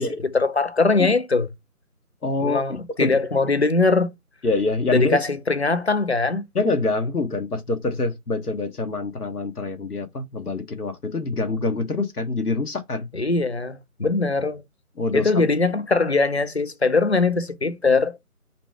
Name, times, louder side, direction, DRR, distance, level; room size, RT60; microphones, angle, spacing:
voice 1, 0.3-1.5 2.4-4.1 4.9-6.5 13.1-14.6 15.1-18.2, left 3 dB, 50° left, 0.5 m, -21 dB
voice 2, 2.2-2.6 3.0-3.2 4.4-5.2 6.5-13.1 15.0-15.5, left 3 dB, 85° left, 1.0 m, -25 dB
4.1 x 2.2 x 4.4 m
figure-of-eight pair, 165°, 44 cm